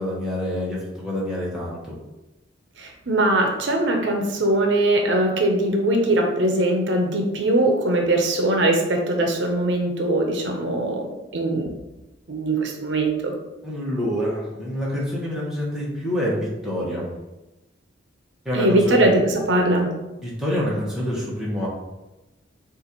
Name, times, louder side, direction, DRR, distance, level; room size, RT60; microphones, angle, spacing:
voice 1, 0.0-1.9 13.6-17.0 18.4-19.1 20.2-21.7, equal, 5° right, -7 dB, 1.2 m, -27 dB
voice 2, 2.8-11.1 11.3-11.7 12.3-13.3 18.5-19.9, right 1 dB, 70° right, 2 dB, 0.6 m, -21 dB
6.6 x 2.5 x 2.9 m, 1.0 s
head